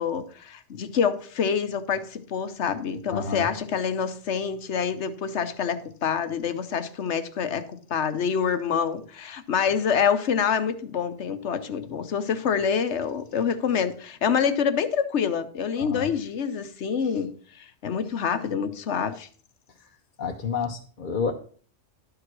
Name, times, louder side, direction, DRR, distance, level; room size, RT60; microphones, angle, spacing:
voice 1, 0.0-19.3, left 7 dB, 65° left, 1.1 m, -26 dB
voice 2, 3.1-3.5 15.8-16.1 20.2-21.3, left 5 dB, 45° left, 0.9 m, -29 dB
12.0 x 4.9 x 6.0 m
omnidirectional pair, 1.3 m